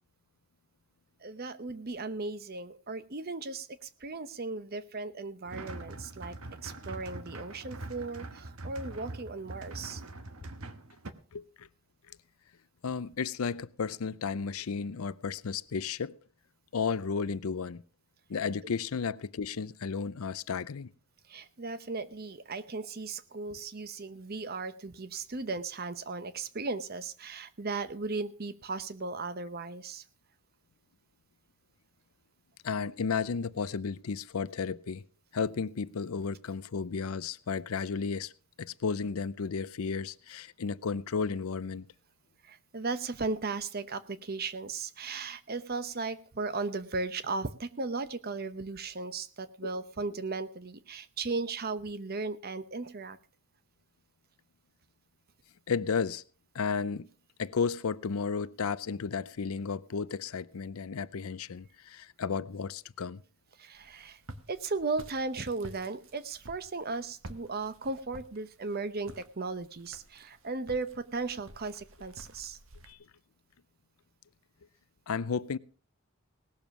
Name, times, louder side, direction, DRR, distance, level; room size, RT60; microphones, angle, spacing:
voice 1, 1.2-10.0 18.6-18.7 21.3-30.0 42.4-53.2 63.6-64.2 64.5-72.6, right 3 dB, 45° right, 0.9 m, -36 dB
sound 1, 5.5-11.1, right 2 dB, 80° right, 1.2 m, -43 dB
voice 2, 11.3-11.7 12.1-12.2 12.8-16.2 16.7-17.8 18.3-20.9 32.6-35.0 35.3-38.3 38.6-41.9 49.6-49.7 55.7-56.2 56.5-57.1 57.4-63.2 72.9-73.0 75.1-75.6, left 5 dB, 80° left, 0.5 m, -33 dB
Walk footsteps, 63.7-72.9, right 1 dB, 65° right, 1.4 m, -51 dB
18.0 x 7.0 x 6.0 m
head